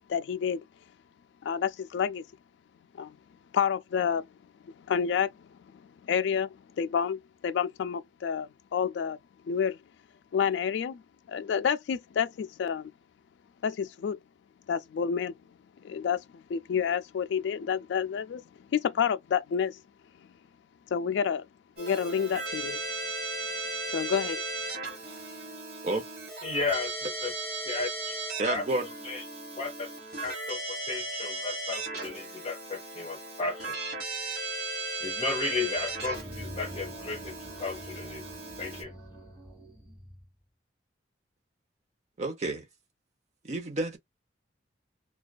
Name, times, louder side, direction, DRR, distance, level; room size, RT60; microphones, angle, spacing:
voice 1, 0.1-0.7 1.4-2.2 2.9-3.2 3.5-4.3 4.6-9.2 9.4-9.8 10.3-11.0 11.3-12.9 13.6-14.2 14.7-15.3 15.8-19.8 20.9-21.5 21.8-22.8 23.9-24.4, left 7 dB, 75° left, 0.3 m, -29 dB
Keyboard (musical), 21.8-38.8, right 2 dB, 55° right, 1.2 m, -37 dB
voice 2, 26.4-27.3 27.6-28.2 28.5-28.6 29.0-29.2 29.6-29.9 30.2-33.8 35.0-38.3 38.6-38.9, left 3 dB, 35° left, 0.8 m, -34 dB
voice 3, 28.4-28.9 42.2-42.6 43.4-44.0, right 2 dB, 40° right, 0.6 m, -30 dB
sound 1, 35.7-40.3, equal, 15° right, 1.2 m, -46 dB
2.4 x 2.3 x 2.2 m
head